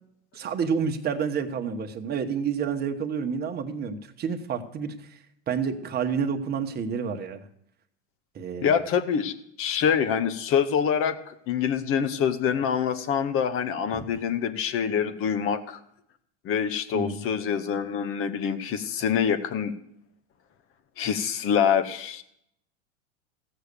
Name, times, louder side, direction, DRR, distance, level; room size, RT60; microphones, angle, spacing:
voice 1, 0.3-5.2 5.5-7.4 8.3-8.7 13.9-14.1 16.9-17.2, right 6 dB, 25° right, 5 dB, 1.2 m, -29 dB
voice 2, 8.6-11.2 11.5-15.8 16.4-19.7 21.0-22.2, left 7 dB, 35° left, 12 dB, 1.1 m, -25 dB
15.5 x 6.6 x 6.8 m, 0.74 s
supercardioid pair, 120°, 36 cm